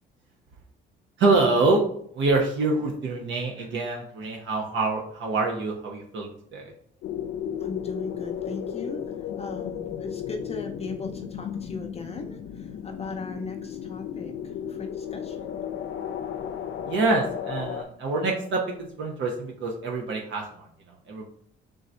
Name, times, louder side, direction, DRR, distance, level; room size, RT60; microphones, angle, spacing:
voice 1, 1.2-1.8 2.1-6.7 16.8-20.7 21.1-21.3, right 3 dB, 65° right, 0 dB, 0.8 m, -26 dB
sound 1, 7.0-17.8, left 9 dB, 75° left, 0.5 m, -34 dB
voice 2, 7.6-15.5, left 3 dB, 30° left, 2 dB, 0.6 m, -38 dB
3.7 x 2.7 x 4.3 m, 0.63 s
cardioid pair, 90°, 21 cm